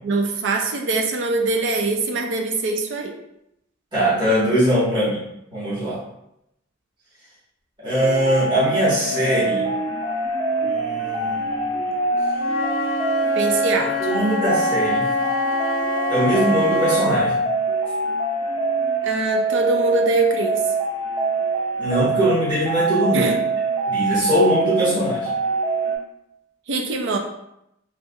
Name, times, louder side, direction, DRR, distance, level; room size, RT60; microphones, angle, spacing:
voice 1, 0.0-3.1 13.3-14.0 19.0-20.6 23.1-23.4 26.7-27.2, right 3 dB, 65° right, 3 dB, 0.5 m, -23 dB
voice 2, 3.9-5.2 5.5-6.0 7.8-9.7 10.6-11.8 14.0-15.1 16.1-17.3 21.8-23.3 23.9-25.3, equal, 25° right, -11 dB, 1.3 m, -21 dB
sound 1, 7.9-26.0, right 2 dB, 40° right, 1.5 m, -24 dB
Wind instrument woodwind instrument, 12.4-17.2, left 4 dB, 70° left, 0.5 m, -27 dB
3.4 x 2.8 x 2.3 m, 0.82 s
head